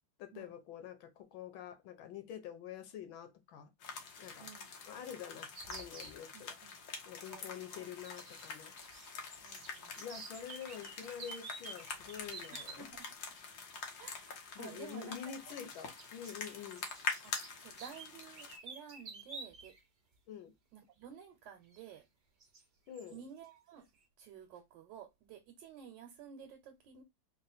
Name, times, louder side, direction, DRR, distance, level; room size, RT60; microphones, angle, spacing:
voice 1, 0.2-4.5 4.9-6.5 7.0-8.7 10.0-12.9 14.5-16.9 20.3-20.5 22.9-23.2, left 9 dB, 85° left, 1.6 m, -47 dB
sound 1, 3.8-18.6, left 5 dB, 60° left, 1.3 m, -45 dB
sound 2, 5.6-6.2 8.0-9.1 9.4-12.8 14.2-14.3 15.5-19.8 20.1-20.2 21.7-21.8 22.4-22.6 23.0-23.2, right 4 dB, 45° right, 0.6 m, -50 dB
voice 2, 6.3-6.7 7.3-7.9 9.4-10.0 12.5-13.1 14.0-15.2 15.4-15.5 17.2-19.7 20.7-22.0 23.1-23.9 24.2-27.0, right 8 dB, 75° right, 1.3 m, -53 dB
3.8 x 2.1 x 4.1 m
omnidirectional pair, 2.1 m